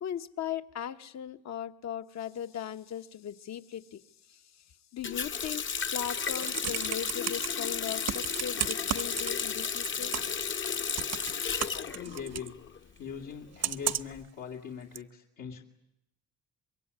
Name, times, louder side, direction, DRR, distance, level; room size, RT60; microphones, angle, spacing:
voice 1, 0.0-4.0 4.3-4.4 4.9-5.6 5.9-10.1, left 9 dB, 65° left, 9 dB, 1.2 m, -38 dB
Water tap faucet, 5.0-12.8 13.1-14.1, left 6 dB, 40° left, 0.9 m, -33 dB
Computer keyboard, 6.1-7.5 8.1-9.6 9.8-10.4 11.0-12.5 13.6-14.2 15.0-15.1, right 9 dB, 55° right, 0.9 m, -33 dB
voice 2, 11.7-12.6 13.0-15.6, left 7 dB, 80° left, -1 dB, 2.4 m, -41 dB
25.0 x 22.0 x 9.6 m, 0.85 s
cardioid pair, 90°, 30 cm